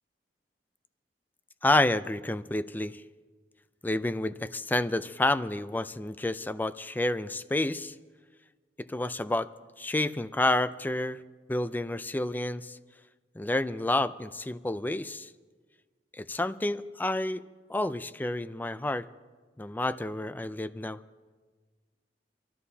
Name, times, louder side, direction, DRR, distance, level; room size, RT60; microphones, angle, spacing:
voice 1, 1.6-3.0 3.8-7.9 8.9-9.5 9.8-11.2 11.5-12.8 13.4-15.3 16.1-17.4 17.7-19.1 19.6-21.0, left 2 dB, 10° left, 14 dB, 0.3 m, -29 dB
25.5 x 13.0 x 2.8 m, 1.4 s
head